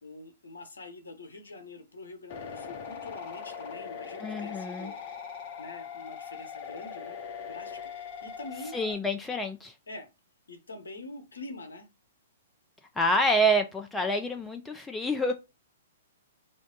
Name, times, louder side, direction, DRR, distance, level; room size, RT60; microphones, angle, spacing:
voice 1, 0.0-5.0 5.6-8.8 9.9-10.1 10.5-11.9, left 2 dB, 70° left, 0.9 m, -45 dB
sound 1, 2.3-8.9, left 6 dB, 40° left, 0.7 m, -41 dB
voice 2, 4.2-4.9 8.7-9.7 13.0-15.3, equal, 10° left, 0.5 m, -27 dB
3.4 x 2.4 x 3.8 m
figure-of-eight pair, 115°, 0 cm